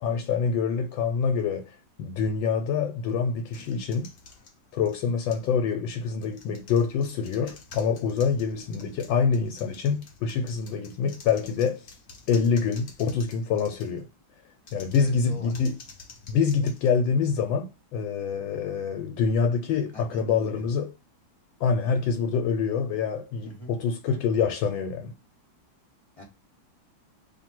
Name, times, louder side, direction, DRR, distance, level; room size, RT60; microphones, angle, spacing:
voice 1, 0.0-4.1 4.7-11.9 12.3-14.0 14.7-15.7 16.3-20.9 21.6-25.1, left 6 dB, 85° left, 1.3 m, -26 dB
sound 1, 3.5-5.6 6.1-14.1 14.6-17.5, left 4 dB, 55° left, 0.9 m, -50 dB
voice 2, 15.0-15.6 19.9-20.7 23.4-23.7 26.2-26.3, equal, 20° left, 1.3 m, -42 dB
3.0 x 2.6 x 4.3 m
omnidirectional pair, 2.1 m